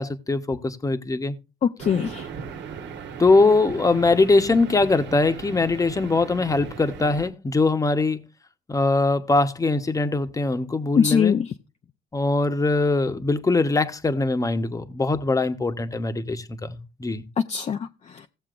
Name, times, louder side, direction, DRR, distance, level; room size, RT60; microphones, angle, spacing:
voice 1, 0.0-1.4 3.2-8.2 8.7-11.4 12.1-17.3, left 3 dB, 15° left, 1.0 m, -22 dB
voice 2, 1.6-2.3 11.0-11.5 17.4-18.3, left 7 dB, 35° left, 0.6 m, -23 dB
sound 1, 1.8-7.3, right 6 dB, 65° right, 1.4 m, -38 dB
17.0 x 7.2 x 2.5 m
cardioid pair, 105°, 20 cm